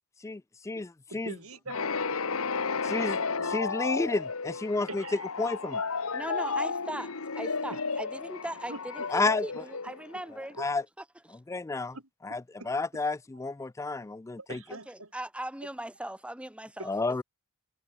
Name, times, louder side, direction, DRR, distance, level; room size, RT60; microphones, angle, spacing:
voice 1, 0.2-1.4 2.8-3.2 3.5-5.0 5.4-5.8 9.1-9.4 10.6-10.8 11.5-12.0 12.2-14.6 16.9-17.2, left 3 dB, 15° left, 0.3 m, -31 dB
voice 2, 1.1-2.4 3.0-3.5 4.9-5.2 7.7-7.8 8.7-8.8 9.2-9.3 10.1-10.2 10.6-10.7 11.9-12.0 12.6-12.7 13.6-13.7 14.4-15.1 16.8-16.9, right 2 dB, 85° right, 5.9 m, -44 dB
sound 1, 1.7-10.4, left 4 dB, 85° left, 1.4 m, -33 dB
voice 3, 6.1-10.6 14.7-16.9, right 1 dB, 5° right, 1.4 m, -39 dB
head